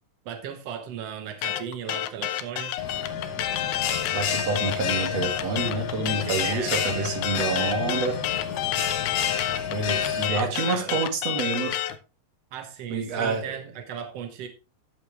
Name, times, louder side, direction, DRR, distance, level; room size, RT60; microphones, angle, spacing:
voice 1, 0.2-2.7 6.1-7.1 9.9-11.0 12.5-14.5, right 8 dB, 75° right, 7 dB, 1.4 m, -37 dB
sound 1, 1.4-12.0, left 13 dB, 80° left, 2.7 m, -29 dB
Bell, 2.8-10.3, left 7 dB, 60° left, 1.8 m, -30 dB
voice 2, 4.1-8.2 9.7-11.8 12.9-13.5, right 4 dB, 50° right, 4 dB, 2.7 m, -28 dB
13.5 x 6.8 x 3.4 m, 0.30 s
omnidirectional pair, 4.6 m